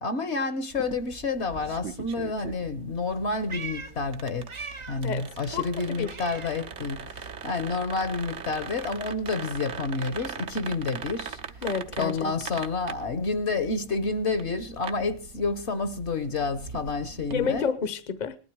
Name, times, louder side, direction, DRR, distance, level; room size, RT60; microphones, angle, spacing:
voice 1, 0.0-4.5 4.9-11.4 12.0-17.7, left 3 dB, 55° left, 1.3 m, -29 dB
sound 1, 0.7-17.6, right 6 dB, 60° right, 1.3 m, -41 dB
Meow, 3.0-5.2 5.5-7.2 7.5-11.6, right 4 dB, 30° right, 0.6 m, -44 dB
voice 2, 5.0-6.1 11.6-12.3 17.3-18.4, left 6 dB, 40° left, 0.9 m, -30 dB
19.0 x 12.0 x 4.7 m
omnidirectional pair, 1.4 m